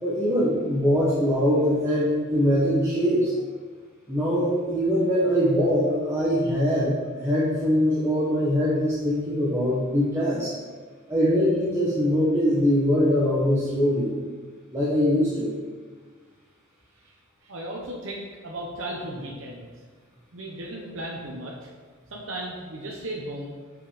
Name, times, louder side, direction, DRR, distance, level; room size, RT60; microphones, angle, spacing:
voice 1, 0.0-3.3 4.1-10.5 11.1-14.1 14.7-15.5, equal, 15° right, -9 dB, 1.2 m, -22 dB
voice 2, 17.4-19.7 20.3-21.7 22.1-23.5, right 1 dB, 75° right, -3 dB, 0.9 m, -35 dB
6.0 x 5.2 x 5.0 m, 1.5 s
head